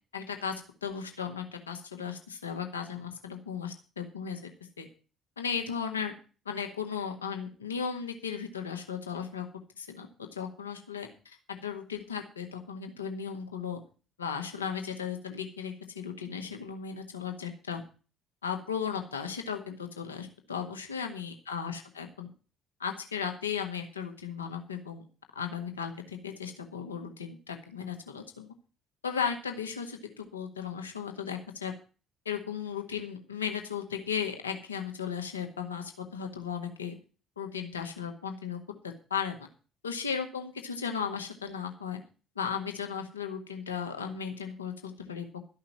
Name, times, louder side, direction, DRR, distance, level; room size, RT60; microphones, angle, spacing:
voice 1, 0.1-4.5 4.8-4.9 5.4-6.1 6.4-9.4 9.8-13.8 14.2-17.8 18.4-22.3 22.8-25.0 25.3-28.5 29.0-31.7 32.2-36.9 37.4-39.5 39.8-42.0 42.3-45.4, left 7 dB, 80° left, 5 dB, 1.7 m, -36 dB
13.0 x 5.7 x 8.9 m, 0.35 s
figure-of-eight pair, 45°, 0 cm